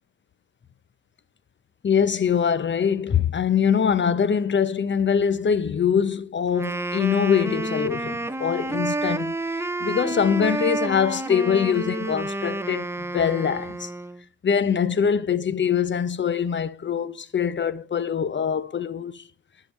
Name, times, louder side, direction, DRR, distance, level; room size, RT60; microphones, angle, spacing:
voice 1, 1.8-9.4 9.8-13.9 14.4-19.2, left 7 dB, 40° left, 0.6 m, -23 dB
Wind instrument woodwind instrument, 6.5-14.2, right 2 dB, 10° right, 0.5 m, -29 dB
10.0 x 3.9 x 5.3 m
cardioid pair, 75°, 30 cm